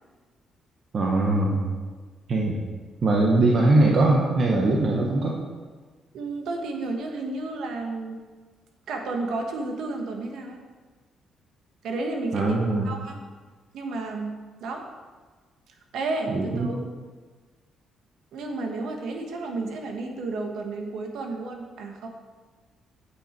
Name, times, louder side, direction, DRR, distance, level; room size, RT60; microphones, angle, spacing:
voice 1, 0.9-1.6 2.3-2.6 3.0-5.4 12.3-12.9 16.3-16.8, right 2 dB, 50° right, -2 dB, 1.4 m, -21 dB
voice 2, 6.1-8.2 8.9-10.6 11.8-12.5 12.8-13.1 13.7-14.8 15.7-16.8 18.3-22.1, right 3 dB, 75° right, 3 dB, 1.5 m, -32 dB
8.7 x 8.2 x 4.6 m, 1.4 s
cardioid pair, 90°, 0 cm